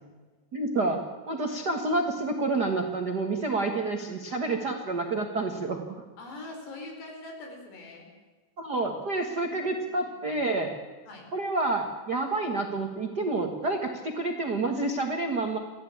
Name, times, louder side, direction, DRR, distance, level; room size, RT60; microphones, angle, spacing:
voice 1, 0.5-5.8 8.6-10.8 11.3-15.6, right 2 dB, 65° right, 4 dB, 1.0 m, -29 dB
voice 2, 4.2-4.8 6.2-8.1 9.4-10.1 11.1-11.3, left 2 dB, 85° left, 2 dB, 6.6 m, -44 dB
24.0 x 15.5 x 8.7 m, 1.3 s
omnidirectional pair, 4.7 m